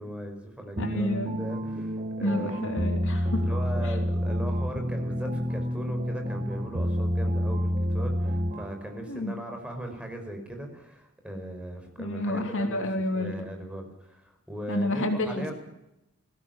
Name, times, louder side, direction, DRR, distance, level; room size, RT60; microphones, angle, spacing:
voice 1, 0.0-2.7 3.3-15.5, right 1 dB, 5° right, 4 dB, 4.8 m, -39 dB
voice 2, 0.8-1.4 2.2-3.4 3.8-3.9 9.1-9.4 12.0-13.5 14.7-15.5, left 1 dB, 60° left, 5 dB, 3.1 m, -29 dB
sound 1, 0.8-8.9, equal, 30° right, 1.2 m, -29 dB
21.0 x 16.5 x 8.9 m, 0.86 s
head